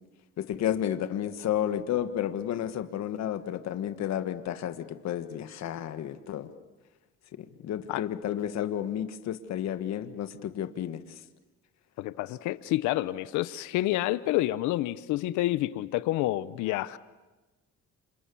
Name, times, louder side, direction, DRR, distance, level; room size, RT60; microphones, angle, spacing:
voice 1, 0.4-6.5 7.6-11.0, left 10 dB, 65° left, 1.6 m, -31 dB
voice 2, 12.0-17.0, left 16 dB, 90° left, 0.8 m, -28 dB
28.0 x 26.5 x 7.1 m
cardioid pair, 95°, 29 cm